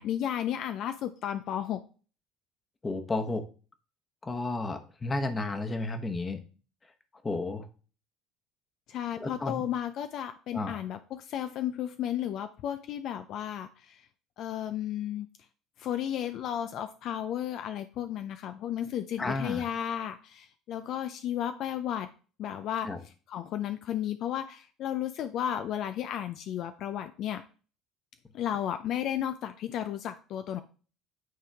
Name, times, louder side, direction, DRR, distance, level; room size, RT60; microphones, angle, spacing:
voice 1, 0.0-1.8 8.9-14.0 14.4-15.3 15.8-22.1 22.4-22.9 23.3-27.4 28.3-30.6, left 10 dB, 60° left, 10 dB, 0.4 m, -33 dB
voice 2, 2.8-3.4 4.2-6.4 7.2-7.7 9.2-9.6 10.5-10.8 19.2-19.7 22.8-23.0, left 2 dB, 25° left, 7 dB, 1.1 m, -32 dB
9.2 x 3.6 x 3.5 m, 0.38 s
supercardioid pair, 85°, 0 cm